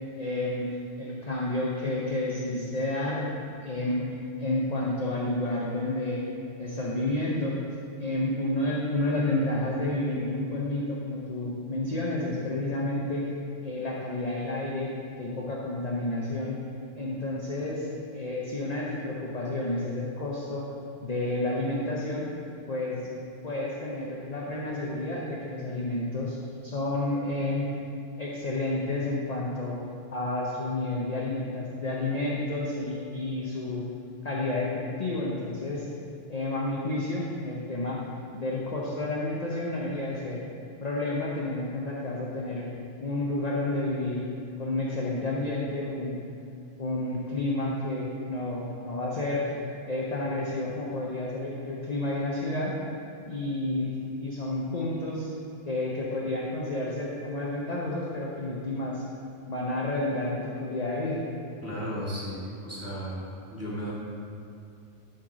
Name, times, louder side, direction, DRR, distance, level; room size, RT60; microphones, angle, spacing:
voice 1, 0.2-0.7 1.0-6.3 6.6-7.6 8.0-13.3 13.6-14.9 15.2-16.6 17.0-17.9 18.1-20.7 21.0-22.3 22.7-23.1 23.4-26.4 26.6-27.7 28.2-29.8 30.1-33.9 34.2-35.9 36.3-38.0 38.3-40.4 40.8-42.6 43.0-44.2 44.6-46.2 46.8-49.6 49.9-52.7 53.3-55.3 55.7-59.0 59.5-61.2, left 2 dB, 35° left, -4 dB, 0.8 m, -30 dB
voice 2, 61.6-63.9, equal, 10° right, -8 dB, 1.8 m, -35 dB
7.3 x 4.5 x 6.1 m, 2.4 s
omnidirectional pair, 1.4 m